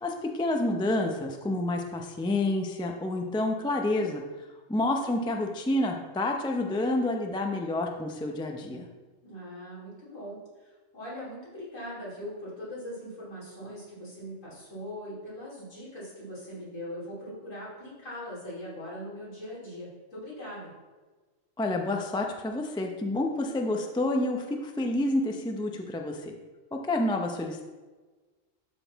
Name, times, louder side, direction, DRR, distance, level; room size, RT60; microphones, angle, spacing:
voice 1, 0.0-4.2 4.7-8.9 21.6-26.3 26.7-27.6, left 2 dB, 5° left, 2 dB, 0.3 m, -29 dB
voice 2, 9.2-20.7, equal, 75° left, -7 dB, 3.4 m, -41 dB
12.0 x 4.1 x 4.0 m, 1.3 s
omnidirectional pair, 1.3 m